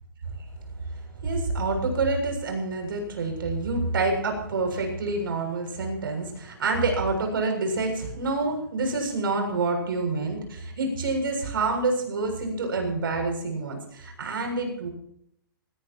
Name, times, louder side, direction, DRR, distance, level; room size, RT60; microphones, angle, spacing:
voice 1, 0.9-14.9, right 3 dB, 70° right, 3 dB, 7.0 m, -27 dB
20.0 x 18.5 x 3.0 m, 0.69 s
hypercardioid pair, 130°, 12 cm